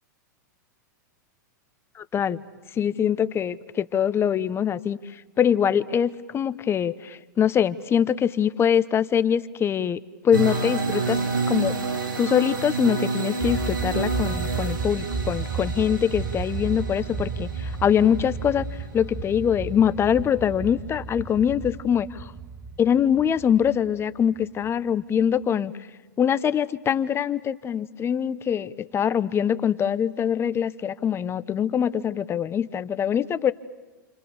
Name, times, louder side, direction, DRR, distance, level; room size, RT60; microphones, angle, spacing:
voice 1, 2.7-5.0 5.4-11.2 11.5-11.7 12.2-18.7 18.9-22.3 22.8-25.7 26.2-33.5, left 8 dB, 25° left, 15 dB, 1.0 m, -23 dB
sound 1, 10.3-19.1, right 4 dB, 85° right, 3.1 m, -29 dB
sound 2, 13.4-24.7, right 5 dB, 20° right, 1.1 m, -33 dB
29.5 x 27.5 x 7.1 m, 1.2 s
hypercardioid pair, 105°, 10 cm